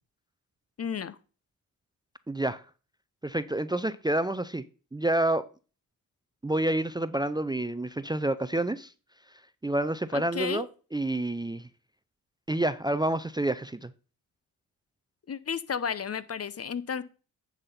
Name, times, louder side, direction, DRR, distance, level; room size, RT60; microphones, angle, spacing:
voice 1, 0.8-1.2 10.1-10.7 15.3-17.0, left 7 dB, 40° left, 0.7 m, -32 dB
voice 2, 2.3-2.6 3.2-4.6 4.9-5.5 6.4-8.9 9.6-10.7 10.9-11.7 12.5-13.9, right 1 dB, 10° right, 0.5 m, -28 dB
9.7 x 3.8 x 5.6 m
supercardioid pair, 50°, 39 cm